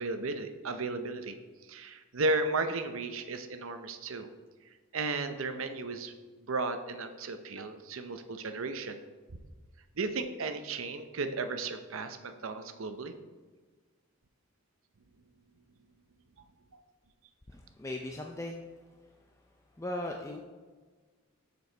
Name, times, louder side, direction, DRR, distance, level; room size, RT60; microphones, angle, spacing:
voice 1, 0.0-1.4 1.7-4.3 4.9-6.1 6.5-9.0 10.0-13.1, right 3 dB, 70° right, 8 dB, 0.7 m, -34 dB
voice 2, 17.5-18.6 19.8-20.4, left 1 dB, 15° left, 1 dB, 0.5 m, -38 dB
7.0 x 6.7 x 4.4 m, 1.4 s
head